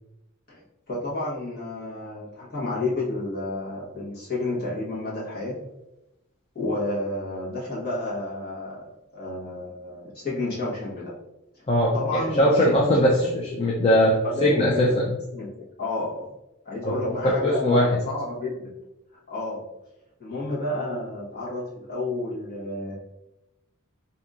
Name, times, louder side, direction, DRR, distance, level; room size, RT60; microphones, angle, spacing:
voice 1, 0.9-5.6 6.5-11.1 11.9-13.1 14.2-15.1 15.3-16.3 16.6-18.7 19.3-19.6 20.2-22.9, left 2 dB, 45° left, -6 dB, 1.2 m, -31 dB
voice 2, 11.7-14.1 14.4-15.0 16.8-16.9 17.4-17.9, equal, 25° left, -4 dB, 0.4 m, -20 dB
4.0 x 2.7 x 2.4 m, 0.91 s
head